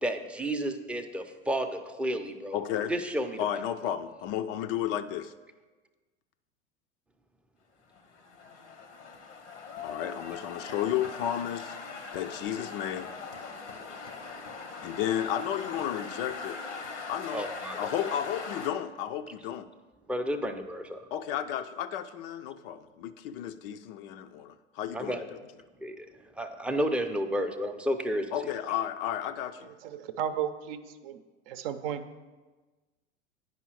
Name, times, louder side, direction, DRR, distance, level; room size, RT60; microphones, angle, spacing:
voice 1, 0.0-2.6 2.9-3.4 17.3-17.9 20.1-21.1 24.9-25.3 25.8-26.1 26.4-28.4, equal, 5° right, 5 dB, 0.5 m, -31 dB
voice 2, 2.5-2.9 3.4-5.3 9.8-11.8 12.1-13.1 14.8-16.6 17.1-17.5 17.8-19.7 21.1-25.4 28.3-29.7, left 10 dB, 55° left, 10 dB, 0.5 m, -33 dB
sound 1, 7.9-18.7, left 4 dB, 75° left, 1.0 m, -41 dB
voice 3, 29.9-31.2 31.5-32.0, right 9 dB, 55° right, 9 dB, 0.6 m, -34 dB
9.4 x 5.4 x 4.7 m, 1.3 s
figure-of-eight pair, 80°, 34 cm